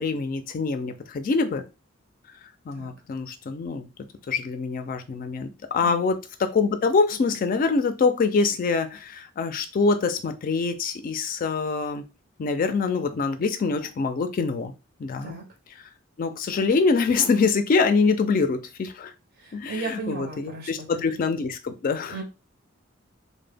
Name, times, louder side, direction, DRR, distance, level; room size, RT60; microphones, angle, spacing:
voice 1, 0.0-1.6 2.7-3.9 4.3-12.1 12.4-14.7 15.0-15.4 16.2-19.1 19.5-22.2, left 4 dB, 45° left, 0.3 m, -25 dB
voice 2, 19.4-21.0 22.1-22.2, right 4 dB, 50° right, 0.6 m, -35 dB
2.1 x 2.1 x 3.3 m
head